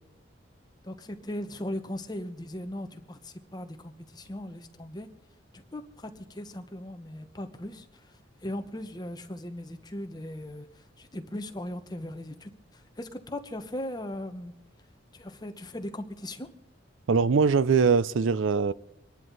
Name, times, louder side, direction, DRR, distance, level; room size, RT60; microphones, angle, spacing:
voice 1, 0.8-5.1 5.5-14.5 15.1-16.5, left 1 dB, 20° left, 1.1 m, -38 dB
voice 2, 17.1-18.7, right 5 dB, 80° right, 0.5 m, -22 dB
26.0 x 10.5 x 4.0 m
head